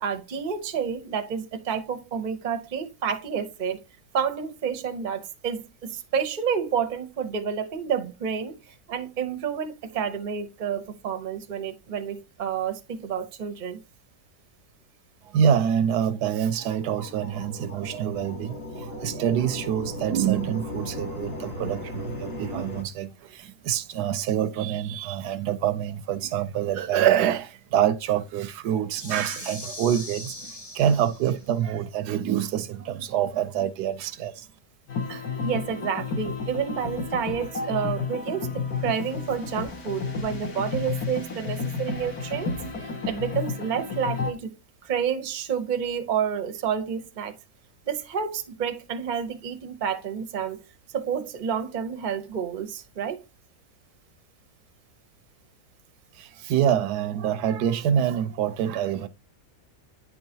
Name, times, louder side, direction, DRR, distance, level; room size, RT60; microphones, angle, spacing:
voice 1, 0.0-3.8 4.1-13.8 35.1-42.5 42.8-44.6 44.8-47.3 47.9-50.6 50.9-53.2, right 7 dB, 40° right, 0.7 m, -29 dB
voice 2, 15.2-34.5 56.1-59.1, right 9 dB, 80° right, 1.1 m, -26 dB
sound 1, 16.2-22.8, left 1 dB, 40° left, 1.5 m, -37 dB
sound 2, 28.9-31.5, left 1 dB, 15° left, 1.1 m, -40 dB
sound 3, 34.9-44.3, left 4 dB, 65° left, 1.9 m, -31 dB
9.6 x 4.6 x 2.7 m
omnidirectional pair, 1.8 m